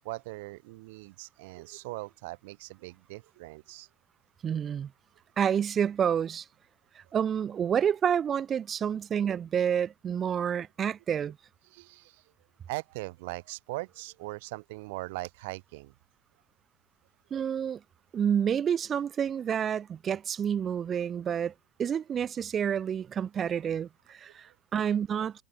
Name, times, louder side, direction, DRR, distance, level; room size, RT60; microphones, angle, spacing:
voice 1, 0.0-3.9 11.7-12.2 12.7-15.9, right 23 dB, 60° right, 0.8 m, -40 dB
voice 2, 4.4-4.9 5.4-6.4 6.9-11.4 17.3-17.8 18.1-21.5 21.8-25.3, right 8 dB, 30° right, 1.2 m, -29 dB
figure-of-eight pair, 80°, 0 cm